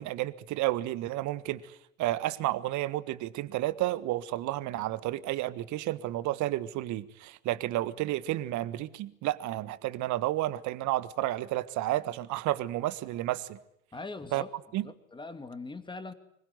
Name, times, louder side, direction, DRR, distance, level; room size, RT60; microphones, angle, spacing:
voice 1, 0.0-13.6 14.3-14.4 14.7-14.9, right 15 dB, 45° right, 1.6 m, -31 dB
voice 2, 13.9-14.5 14.8-16.1, left 3 dB, 10° left, 2.7 m, -41 dB
25.5 x 21.0 x 9.7 m
hypercardioid pair, 80°, 40 cm